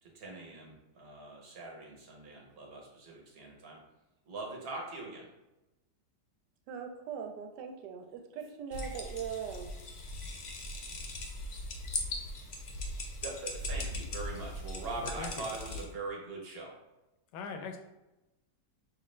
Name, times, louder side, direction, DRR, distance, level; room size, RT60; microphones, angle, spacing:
voice 1, 0.0-3.8 4.3-5.3 13.2-16.7, right 3 dB, 45° right, -1 dB, 1.0 m, -42 dB
voice 2, 6.7-9.7, right 7 dB, 85° right, 3 dB, 1.2 m, -40 dB
sound 1, 8.7-15.8, left 1 dB, 60° left, 0.8 m, -39 dB
voice 3, 15.0-15.4 17.3-17.8, left 5 dB, 75° left, 5 dB, 1.2 m, -41 dB
5.7 x 2.5 x 3.1 m, 0.99 s
omnidirectional pair, 1.9 m